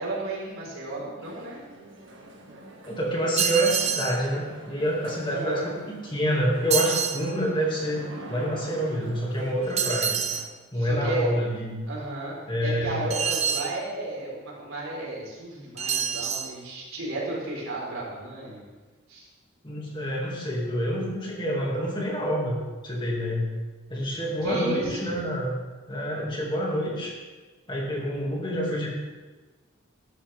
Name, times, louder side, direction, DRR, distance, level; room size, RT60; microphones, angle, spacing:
voice 1, 0.0-1.6 5.3-5.7 10.7-11.3 11.9-18.6 19.1-19.3 24.4-25.2, right 2 dB, 90° right, -4 dB, 4.7 m, -34 dB
sound 1, 1.2-10.4, right 1 dB, 60° right, 1.9 m, -46 dB
voice 2, 2.8-10.2 10.7-11.8 12.5-13.1 19.6-22.6 22.8-23.5 23.9-25.5 25.9-27.1 27.7-28.9, equal, 20° left, -3 dB, 2.5 m, -27 dB
sound 2, 3.4-4.2 6.7-7.2 9.8-10.5 13.1-13.7 15.8-16.5, right 7 dB, 30° right, 0.8 m, -26 dB
13.5 x 12.5 x 3.6 m, 1.3 s
head